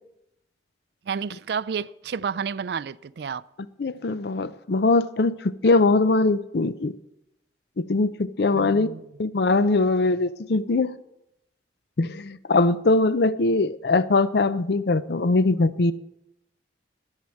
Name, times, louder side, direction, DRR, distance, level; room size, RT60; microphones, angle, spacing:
voice 1, 1.1-3.5 8.5-9.0, right 6 dB, 60° right, 0.3 m, -30 dB
voice 2, 3.8-6.9 7.8-8.9 9.2-11.0 12.0-15.9, left 3 dB, 60° left, 0.5 m, -21 dB
11.5 x 7.4 x 7.7 m
head